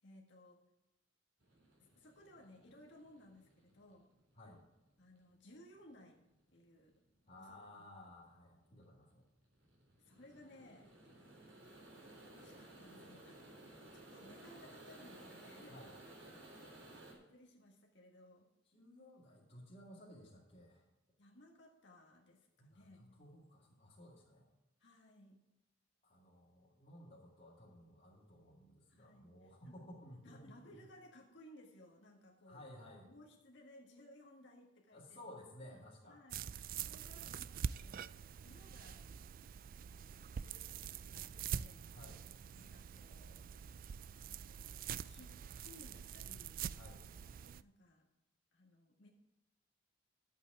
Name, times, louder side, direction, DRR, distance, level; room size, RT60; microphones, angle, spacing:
voice 1, 0.0-0.6 1.8-4.1 5.0-6.3 6.5-6.9 7.4-7.6 8.0-8.1 10.0-10.9 12.3-16.4 17.1-18.5 21.2-23.2 24.8-25.4 28.9-29.7 30.2-32.7 33.0-35.4 35.6-39.1 40.2-41.9 42.5-43.5 44.2-46.6 47.6-48.1 48.5-49.1, left 1 dB, 65° left, 0 dB, 1.7 m, -61 dB
sound 1, 1.4-17.1, right 1 dB, 70° right, 3.6 m, -58 dB
voice 2, 7.3-9.2 15.7-15.9 18.7-20.8 22.6-24.4 26.0-30.9 32.5-33.1 34.9-36.2 41.9-42.2 46.7-47.0, left 1 dB, 35° left, -8 dB, 2.6 m, -56 dB
sound 2, 36.3-47.6, right 7 dB, 45° right, 0.3 m, -45 dB
11.0 x 8.4 x 4.8 m, 0.99 s
head